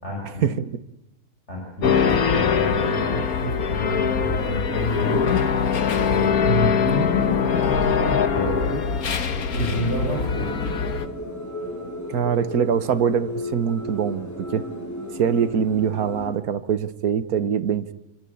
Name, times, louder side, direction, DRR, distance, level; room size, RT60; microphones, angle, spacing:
voice 1, 0.0-0.6 1.5-5.5 6.0-8.9 9.5-10.5, left 1 dB, 50° left, -1 dB, 6.9 m, -28 dB
sound 1, 1.8-11.1, left 6 dB, 85° left, 1.8 m, -22 dB
sound 2, 9.5-16.3, left 1 dB, 10° left, 6.8 m, -34 dB
voice 2, 12.1-14.6 15.1-17.9, right 7 dB, 85° right, 14 dB, 1.7 m, -23 dB
28.0 x 24.5 x 8.7 m, 0.95 s
omnidirectional pair, 1.5 m